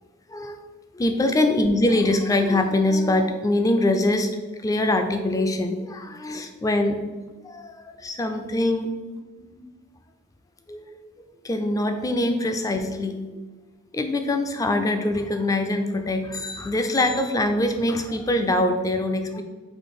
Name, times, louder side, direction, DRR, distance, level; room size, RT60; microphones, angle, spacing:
voice 1, 0.9-7.0 7.4-8.9 9.4-9.6 10.7-10.9 11.4-13.2 13.9-19.4, left 1 dB, 15° left, 6 dB, 0.3 m, -23 dB
4.4 x 2.6 x 4.6 m, 1.3 s
head